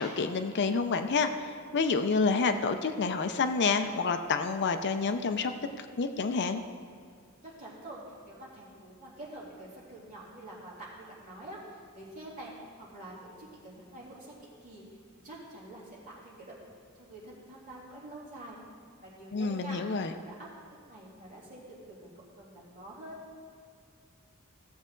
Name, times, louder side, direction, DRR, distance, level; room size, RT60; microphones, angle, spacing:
voice 1, 0.0-5.5 5.8-6.6 19.3-20.1, left 4 dB, 50° left, 8 dB, 0.5 m, -28 dB
voice 2, 7.3-18.6 19.0-19.8 20.1-20.5 20.8-23.2, right 1 dB, 40° right, -7 dB, 3.2 m, -47 dB
16.0 x 7.3 x 3.8 m, 2.1 s
head